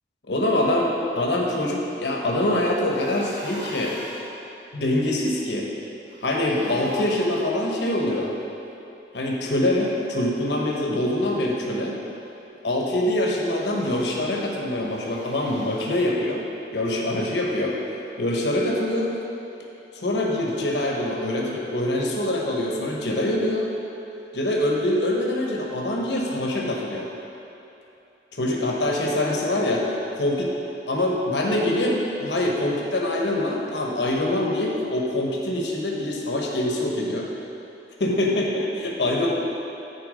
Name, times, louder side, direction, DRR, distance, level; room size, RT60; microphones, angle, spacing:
voice 1, 0.3-3.9 4.7-5.7 6.2-8.3 9.1-12.0 12.6-16.4 16.7-17.7 18.2-19.1 19.9-23.7 24.3-27.1 28.3-29.8 30.1-30.6 30.9-37.3 38.0-39.3, left 1 dB, 80° left, -2 dB, 1.0 m, -24 dB
sound 1, 2.9-4.3 6.1-7.5 13.4-14.1 14.9-15.9, equal, 85° right, 1.5 m, -41 dB
9.4 x 4.5 x 5.0 m, 2.9 s
head